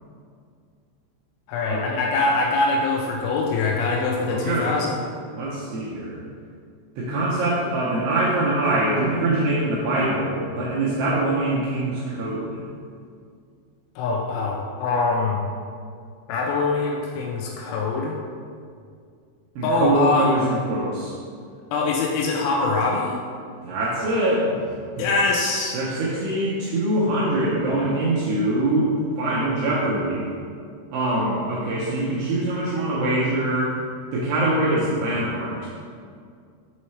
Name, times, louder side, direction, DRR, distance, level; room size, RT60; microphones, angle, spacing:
voice 1, 1.5-5.0 14.0-15.4 16.3-18.2 19.6-20.4 21.7-23.2 25.0-25.8, left 3 dB, 85° left, -1 dB, 3.0 m, -23 dB
voice 2, 4.3-4.7 5.3-6.2 7.0-12.6 19.6-21.1 23.6-24.6 25.0-25.1 25.7-28.9 29.2-30.3 30.9-33.7 34.1-35.7, right 2 dB, 80° right, -7 dB, 2.5 m, -23 dB
7.2 x 4.2 x 3.2 m, 2.2 s
omnidirectional pair, 5.5 m